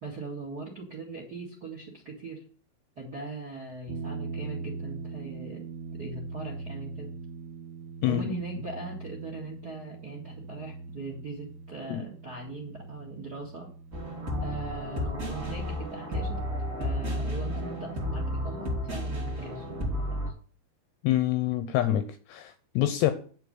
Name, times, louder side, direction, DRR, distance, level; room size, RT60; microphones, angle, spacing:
voice 1, 0.0-2.4 2.9-5.7 5.9-7.1 8.0-13.7 14.4-16.4 16.8-20.3, right 3 dB, 50° right, 1.1 m, -40 dB
sound 1, 3.9-17.0, right 4 dB, 85° right, 3.0 m, -42 dB
voice 2, 8.0-8.3 11.9-12.0 21.0-23.1, left 13 dB, 85° left, 2.5 m, -26 dB
sound 2, 13.9-20.3, equal, 20° right, 2.7 m, -32 dB
10.0 x 4.7 x 7.9 m
omnidirectional pair, 5.4 m